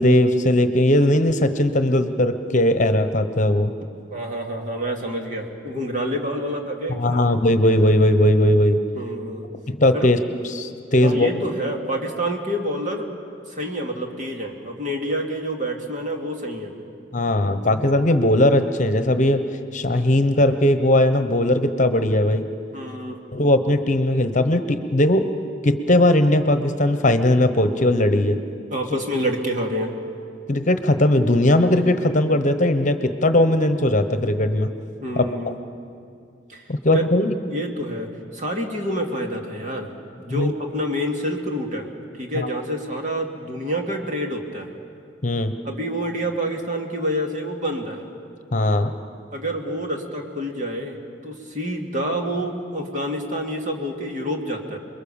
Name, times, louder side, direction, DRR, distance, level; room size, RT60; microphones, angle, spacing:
voice 1, 0.0-3.7 7.0-8.8 9.7-10.2 10.5-11.4 17.1-19.4 19.7-22.5 23.3-25.3 25.6-28.4 30.5-34.7 35.1-35.5 36.7-37.3 40.3-40.5 42.3-42.5 45.2-45.5 48.5-48.9, left 1 dB, 45° left, 9 dB, 1.1 m, -19 dB
voice 2, 4.1-7.2 9.0-9.5 9.9-10.1 11.0-13.1 13.5-16.8 22.7-23.2 28.7-30.0 35.0-35.6 36.5-37.0 37.5-39.9 40.2-41.9 42.2-44.7 45.6-48.0 49.3-54.8, equal, 45° right, 2 dB, 2.5 m, -28 dB
28.0 x 22.0 x 7.2 m, 2.5 s
head